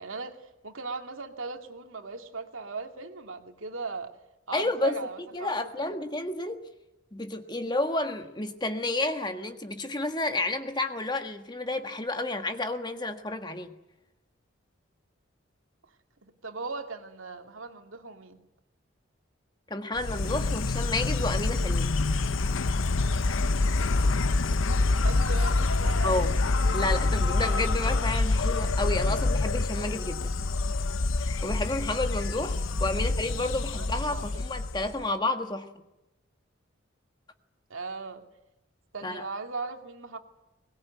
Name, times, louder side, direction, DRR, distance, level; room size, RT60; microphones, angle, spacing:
voice 1, 0.0-4.1 4.5-5.9 16.2-18.4 24.9-26.3 33.0-33.1 33.7-34.4 37.7-38.2 38.9-40.2, right 4 dB, 85° right, 5 dB, 2.5 m, -38 dB
voice 2, 4.5-5.1 5.3-6.6 7.1-13.7 19.7-21.9 26.0-26.4 26.7-30.3 31.2-35.7 39.0-39.2, left 2 dB, 20° left, 7 dB, 1.5 m, -31 dB
Insect, 20.0-35.1, left 3 dB, 80° left, 0.8 m, -26 dB
22.5 x 20.5 x 9.4 m, 0.97 s
head